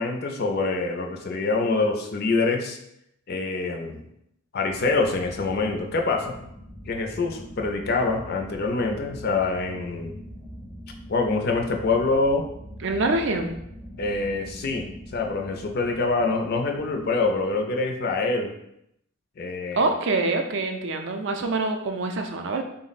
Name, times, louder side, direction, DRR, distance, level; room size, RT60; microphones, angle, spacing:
voice 1, 0.0-2.8 3.3-4.0 4.5-6.4 6.9-10.2 11.1-12.5 14.0-18.5 19.4-19.9, left 3 dB, 45° left, 3 dB, 0.4 m, -25 dB
sound 1, 4.7-17.9, equal, 5° right, 0.5 m, -43 dB
voice 2, 12.8-13.5 19.7-22.6, right 2 dB, 55° right, 5 dB, 0.4 m, -25 dB
3.7 x 2.0 x 4.0 m, 0.78 s
head